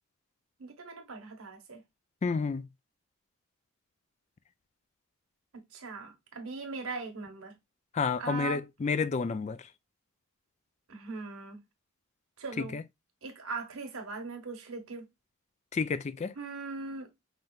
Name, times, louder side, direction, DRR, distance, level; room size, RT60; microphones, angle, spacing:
voice 1, 0.6-1.8 5.7-7.5 8.2-8.6 10.9-11.6 12.4-12.8 13.2-15.0 16.3-17.1, right 4 dB, 70° right, 1.4 m, -40 dB
voice 2, 2.2-2.7 7.9-9.6 12.6-12.8 15.7-16.3, left 5 dB, 30° left, 0.3 m, -30 dB
5.5 x 3.3 x 2.3 m
head